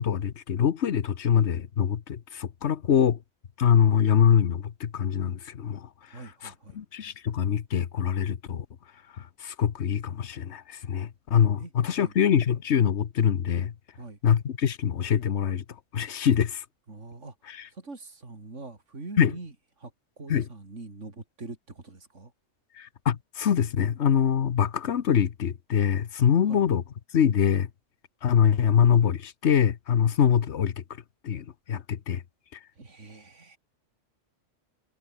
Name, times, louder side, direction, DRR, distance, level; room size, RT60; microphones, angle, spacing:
voice 1, 0.0-3.2 3.6-5.9 6.7-8.7 9.4-13.7 14.2-15.6 15.9-16.6 19.2-19.3 20.3-20.4 22.8-26.8 27.1-27.7 28.2-30.7 31.2-32.2, left 8 dB, 70° left, 1.3 m, -24 dB
voice 2, 6.1-6.8 11.6-12.2 13.9-14.2 16.9-19.9 20.2-22.3 26.4-26.6 32.7-33.6, right 3 dB, 75° right, 3.8 m, -43 dB
omnidirectional pair, 1.2 m